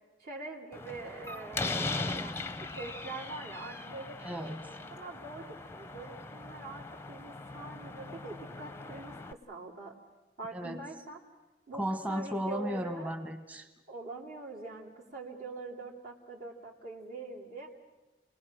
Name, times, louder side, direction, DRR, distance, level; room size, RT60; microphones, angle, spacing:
voice 1, 0.2-4.2 4.8-9.9 10.4-11.2 11.7-11.8 12.1-13.1 13.9-17.7, right 3 dB, 55° right, -5 dB, 2.9 m, -44 dB
Slam, 0.7-9.3, left 3 dB, 15° left, 0.7 m, -39 dB
voice 2, 4.2-4.8 10.5-10.8 11.7-13.7, equal, 10° right, 7 dB, 1.2 m, -35 dB
29.5 x 19.5 x 6.3 m, 1.1 s
head